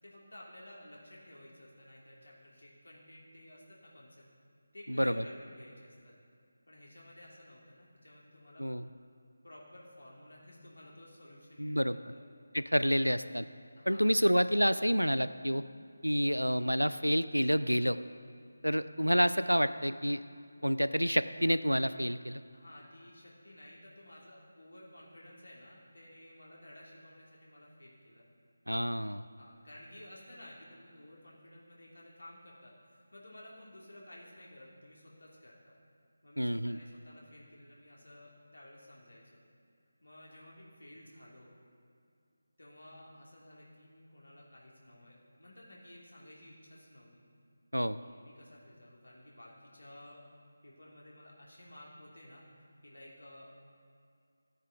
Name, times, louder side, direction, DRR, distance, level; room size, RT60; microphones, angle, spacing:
voice 1, 0.0-4.3 4.7-6.1 6.7-8.7 9.4-12.2 13.7-14.3 22.5-28.3 29.2-35.8 36.2-39.4 40.0-41.5 42.6-47.3 48.0-50.2 50.6-52.5 52.8-53.5, left 1 dB, 65° left, -4 dB, 2.7 m, -54 dB
voice 2, 4.9-5.2 8.6-8.9 11.6-12.0 12.5-13.5 13.9-15.6 16.0-18.0 18.6-20.2 20.6-22.4 28.7-29.2 36.4-36.8 47.7-48.0, equal, 90° right, 13 dB, 0.5 m, -28 dB
15.0 x 9.6 x 3.9 m, 2.4 s
figure-of-eight pair, 160°, 0 cm